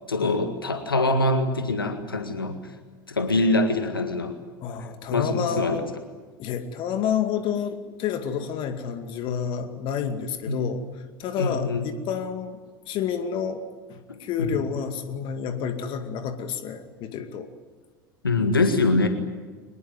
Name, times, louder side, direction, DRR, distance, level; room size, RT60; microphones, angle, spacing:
voice 1, 0.1-2.6 3.1-4.4 5.1-5.8 10.5-10.7 11.4-11.9 14.1-14.6 18.2-19.1, left 2 dB, 85° left, 7 dB, 1.7 m, -24 dB
voice 2, 4.6-5.9 6.4-10.8 11.2-12.6 12.9-13.6 13.9-17.5, left 7 dB, 45° left, 8 dB, 2.3 m, -29 dB
24.0 x 21.0 x 9.3 m, 1.4 s
figure-of-eight pair, 75°, 12 cm